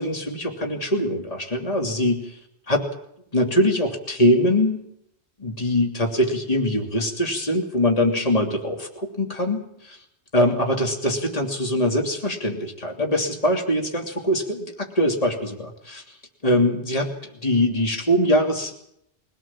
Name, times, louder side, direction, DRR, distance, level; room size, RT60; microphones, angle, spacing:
voice 1, 0.0-2.4 2.7-2.9 3.3-4.8 5.4-10.0 10.3-16.0 16.4-17.1 17.4-18.7, left 1 dB, 35° left, 2 dB, 3.1 m, -22 dB
23.5 x 17.5 x 7.4 m, 0.73 s
omnidirectional pair, 1.1 m